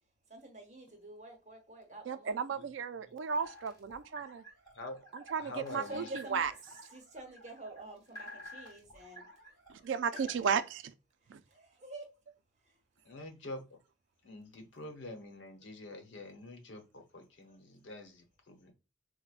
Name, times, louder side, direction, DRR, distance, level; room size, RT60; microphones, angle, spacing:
voice 1, 0.3-2.6 5.7-6.5 6.9-9.3 10.1-10.4 11.5-12.0, right 2 dB, 40° right, 0.9 m, -48 dB
voice 2, 2.1-4.4 5.1-6.5 9.8-10.8 11.3-11.4, right 6 dB, 80° right, 0.3 m, -34 dB
sound 1, 3.3-10.7, equal, 20° left, 1.0 m, -51 dB
voice 3, 5.4-6.1 13.0-13.8 14.2-18.7, left 2 dB, 80° left, 0.9 m, -46 dB
4.6 x 2.1 x 2.4 m
head